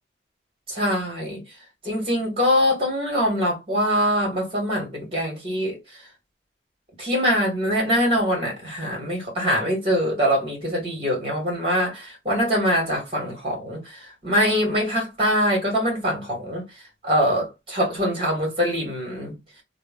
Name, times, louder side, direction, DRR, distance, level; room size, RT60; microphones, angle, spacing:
voice 1, 0.7-1.4 1.8-5.8 7.0-16.6 17.0-19.4, equal, 30° right, 2.0 m, -23 dB
3.2 x 2.5 x 3.6 m
head